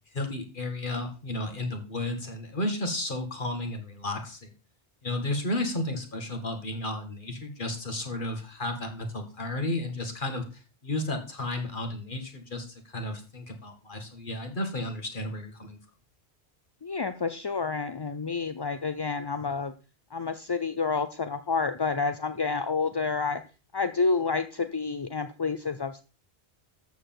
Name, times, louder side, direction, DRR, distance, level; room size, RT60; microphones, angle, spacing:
voice 1, 0.1-4.5 5.0-15.8, left 1 dB, 50° left, 5 dB, 2.3 m, -33 dB
voice 2, 16.8-19.7 20.1-23.4 23.7-26.0, left 4 dB, 30° left, 10 dB, 0.5 m, -29 dB
13.5 x 4.6 x 7.8 m, 0.35 s
omnidirectional pair, 1.1 m